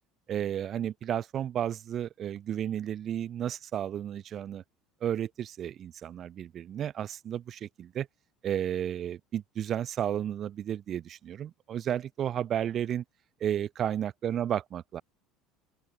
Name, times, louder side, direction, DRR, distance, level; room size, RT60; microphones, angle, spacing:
voice 1, 0.3-4.6 5.0-8.1 8.4-13.0 13.4-15.0, right 10 dB, 40° right, 2.8 m, -32 dB
open air
supercardioid pair, 125°, 0 cm